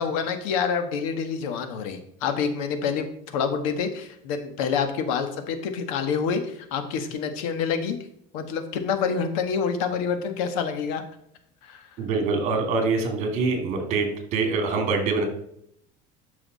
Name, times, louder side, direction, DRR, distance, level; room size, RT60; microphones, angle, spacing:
voice 1, 0.0-8.0 8.3-11.0 11.6-11.9, left 6 dB, 85° left, 8 dB, 1.5 m, -27 dB
voice 2, 12.0-15.2, right 4 dB, 40° right, 4 dB, 2.7 m, -24 dB
12.5 x 5.8 x 4.1 m, 0.72 s
cardioid pair, 165°, 18 cm